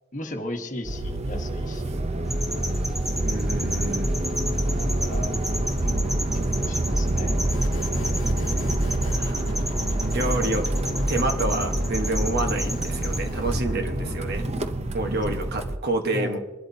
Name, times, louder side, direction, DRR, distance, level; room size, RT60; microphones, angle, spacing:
voice 1, 0.1-2.0 4.8-5.3 5.8-7.4 16.1-16.4, left 1 dB, 40° left, 4 dB, 1.2 m, -36 dB
sound 1, 0.8-15.8, right 1 dB, 30° right, 0.6 m, -27 dB
sound 2, 2.3-13.3, equal, ahead, 0.8 m, -31 dB
voice 2, 3.2-4.1 9.1-9.5 10.0-10.7 11.1-14.5 14.9-16.4, right 2 dB, 50° right, 5 dB, 1.1 m, -28 dB
sound 3, 7.5-14.3, left 1 dB, 70° left, 1.0 m, -37 dB
24.5 x 12.0 x 2.8 m, 1.3 s
head